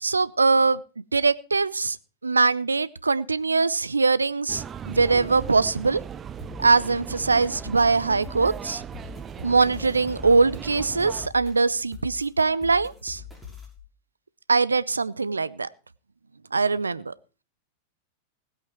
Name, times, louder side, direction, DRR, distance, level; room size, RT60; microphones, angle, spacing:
voice 1, 0.0-0.8 1.1-2.0 2.2-6.0 6.6-8.8 9.4-13.2 14.5-15.7 16.5-17.1, right 4 dB, 80° right, 18 dB, 0.6 m, -22 dB
sound 1, 4.5-11.3, right 8 dB, 25° right, 0.6 m, -38 dB
sound 2, 6.4-13.8, left 7 dB, 5° left, 5.9 m, -44 dB
19.0 x 8.3 x 4.6 m, 0.34 s
figure-of-eight pair, 90°, 0 cm